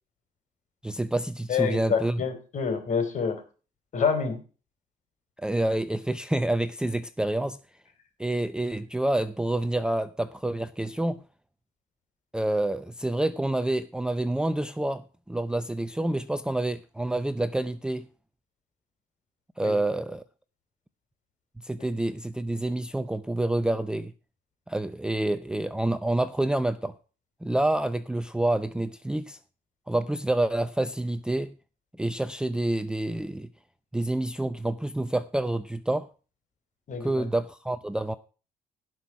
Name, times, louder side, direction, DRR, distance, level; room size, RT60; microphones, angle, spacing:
voice 1, 0.8-2.1 5.4-7.6 8.2-11.2 12.3-18.1 19.6-20.2 21.6-24.1 24.7-26.9 27.4-29.4 29.9-31.5 32.0-33.5 33.9-36.1 37.0-38.1, right 1 dB, 5° right, 0.5 m, -28 dB
voice 2, 1.5-3.4 3.9-4.4 19.6-19.8 21.8-21.9 36.9-37.3, left 6 dB, 45° left, 4.2 m, -27 dB
17.5 x 5.9 x 4.8 m
cardioid pair, 110°, 17 cm